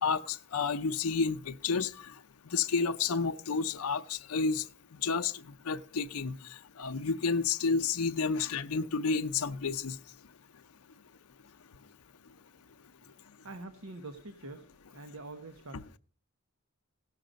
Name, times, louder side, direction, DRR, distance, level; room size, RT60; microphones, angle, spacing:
voice 1, 0.0-1.9 2.5-4.6 5.0-5.3 5.7-6.3 6.8-10.0, left 5 dB, 85° left, 0.6 m, -30 dB
voice 2, 13.4-14.6 14.9-16.0, right 2 dB, 75° right, 1.0 m, -45 dB
16.5 x 6.6 x 5.0 m
head